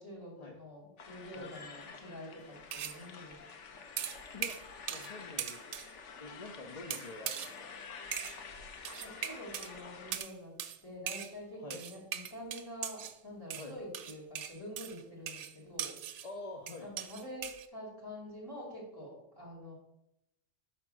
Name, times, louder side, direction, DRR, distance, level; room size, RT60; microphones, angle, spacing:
voice 1, 0.0-3.3 8.9-10.5 10.8-15.9 16.8-19.7, left 1 dB, 20° left, -4 dB, 2.6 m, -47 dB
sound 1, 1.0-10.2, left 5 dB, 85° left, 1.1 m, -49 dB
sound 2, 2.7-3.0 4.0-5.1 5.4-5.9 6.9-7.5 8.1-8.4 8.8-9.7 10.1-10.3 10.6-10.8 11.1-11.3 11.7-13.2 13.5-16.3 16.7-17.7, right 9 dB, 80° right, 0.9 m, -40 dB
voice 2, 4.9-5.8 6.2-7.7 11.6-11.9 13.5-13.8 16.2-16.9, left 2 dB, 40° left, 2 dB, 0.7 m, -46 dB
5.9 x 4.4 x 6.2 m, 0.84 s
omnidirectional pair, 1.2 m